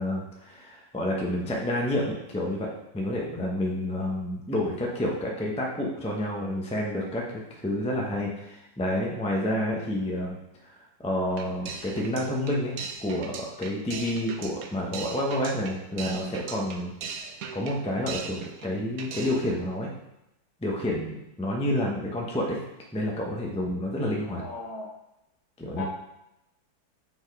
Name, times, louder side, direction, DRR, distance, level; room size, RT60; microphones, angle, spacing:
voice 1, 0.0-10.4 10.6-10.7 11.0-16.9 17.5-19.9 20.6-22.6 22.9-24.4 25.6-25.9, left 1 dB, 5° left, -2 dB, 0.6 m, -29 dB
sound 1, 11.3-18.7 19.0-19.5, right 5 dB, 65° right, 1.0 m, -39 dB
voice 2, 24.4-24.9 25.8-25.9, left 3 dB, 60° left, 0 dB, 1.5 m, -36 dB
6.0 x 4.6 x 4.8 m, 0.88 s
omnidirectional pair, 2.0 m